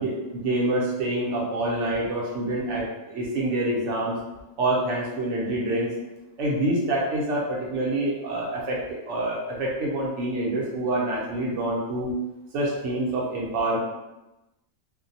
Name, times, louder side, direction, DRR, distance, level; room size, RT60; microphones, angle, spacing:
voice 1, 0.0-4.2 4.6-5.9 6.4-12.1 12.5-13.8, right 1 dB, 65° right, -4 dB, 0.9 m, -26 dB
2.5 x 2.1 x 2.6 m, 1.0 s
omnidirectional pair, 1.5 m